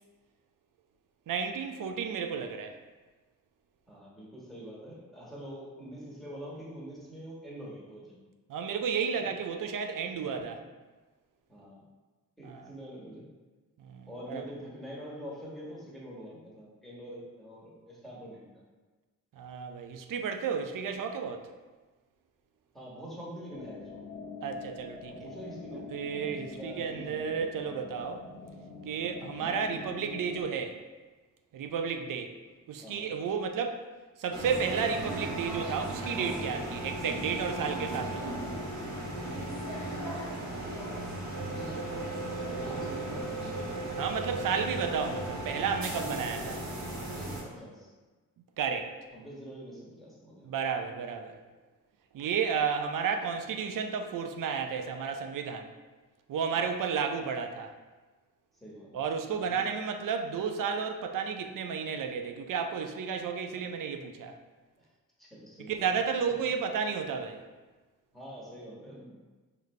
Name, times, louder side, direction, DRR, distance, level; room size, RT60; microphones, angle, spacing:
voice 1, 1.3-2.8 8.5-10.6 12.4-12.7 13.8-14.4 19.3-21.5 24.4-25.3 25.7-28.3 28.8-30.8 31.5-32.3 32.7-33.8 34.2-38.4 44.0-46.6 48.6-48.9 50.4-51.4 52.1-55.7 56.3-57.7 58.9-64.4 65.7-67.4, right 6 dB, 70° right, 6 dB, 0.5 m, -32 dB
voice 2, 3.9-8.2 9.2-9.3 10.2-10.5 11.5-11.8 12.4-13.3 14.1-18.6 22.7-24.1 25.1-27.4 32.8-33.1 41.3-43.7 45.7-46.6 47.1-47.9 49.1-50.5 58.5-59.6 63.5-63.6 64.8-64.9 65.2-66.0 68.1-69.2, equal, ahead, -6 dB, 1.5 m, -45 dB
sound 1, 23.5-30.4, left 4 dB, 25° left, 0.8 m, -45 dB
sound 2, 34.3-47.4, right 1 dB, 55° right, 1.3 m, -36 dB
4.0 x 3.3 x 3.2 m, 1.3 s
cardioid pair, 60°, 34 cm